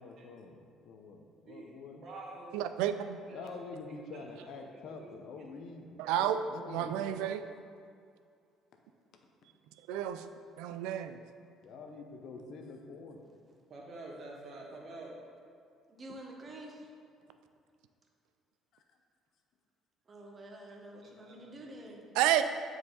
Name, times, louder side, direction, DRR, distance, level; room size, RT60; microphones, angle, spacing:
voice 1, 0.0-2.0 3.3-7.3 11.6-13.2 18.7-18.8, left 3 dB, 65° left, 4 dB, 0.8 m, -47 dB
voice 2, 2.0-3.6 4.1-4.4 5.0-5.1 6.0-6.2 7.4-7.5 13.7-15.2 21.0-21.7, right 2 dB, 55° right, -3 dB, 1.6 m, -48 dB
voice 3, 2.5-3.2 6.0-6.4 6.7-7.4 9.9-10.2 10.6-11.2 22.2-22.4, right 11 dB, 85° right, 10 dB, 0.3 m, -30 dB
voice 4, 15.9-16.9 20.1-22.1, right 1 dB, 35° right, 0 dB, 1.2 m, -48 dB
7.5 x 4.7 x 4.1 m, 2.3 s
supercardioid pair, 80°, 0 cm